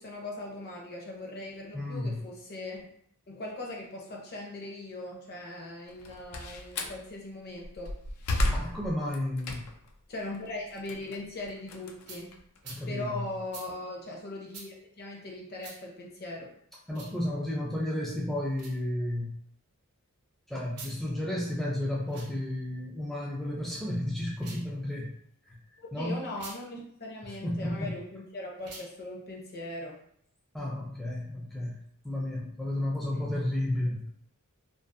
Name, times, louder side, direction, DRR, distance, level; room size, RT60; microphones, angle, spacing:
voice 1, 0.0-2.9 3.3-7.9 10.1-12.3 12.9-16.5 25.8-30.0 33.1-33.3, left 2 dB, 45° left, -1 dB, 0.6 m, -40 dB
voice 2, 1.7-2.2 8.5-9.6 12.6-13.3 16.9-19.4 20.5-25.1 25.5-25.6 25.9-26.1 27.2-27.9 30.5-31.8 32.0-34.0, left 1 dB, ahead, -4 dB, 0.3 m, -32 dB
Slam, 5.9-7.0 7.6-9.9 10.3-12.7, left 1 dB, 90° left, 0.4 m, -33 dB
sound 1, 12.1-12.2 12.6-12.8 13.5-13.7 14.5-14.7 15.6-15.8 16.9-17.1 18.5-18.8 20.7-21.0 22.0-22.3 24.3-24.7 26.3-26.6 28.6-28.9, right 4 dB, 75° right, 0.6 m, -45 dB
2.5 x 2.3 x 2.5 m, 0.67 s
head